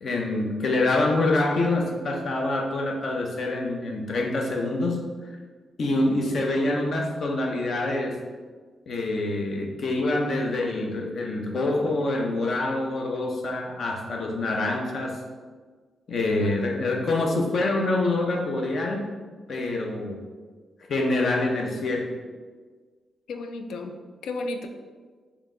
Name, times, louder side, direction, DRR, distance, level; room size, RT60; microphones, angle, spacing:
voice 1, 0.0-5.1 5.8-8.2 8.9-15.2 16.1-19.1 19.5-20.2 20.9-22.1, left 2 dB, 45° left, 2 dB, 0.6 m, -26 dB
voice 2, 6.1-6.4 16.4-16.6 16.9-17.0 23.3-24.0 24.2-24.7, left 3 dB, 90° left, 6 dB, 0.4 m, -34 dB
4.3 x 3.0 x 3.7 m, 1.5 s
wide cardioid pair, 170°, 0 cm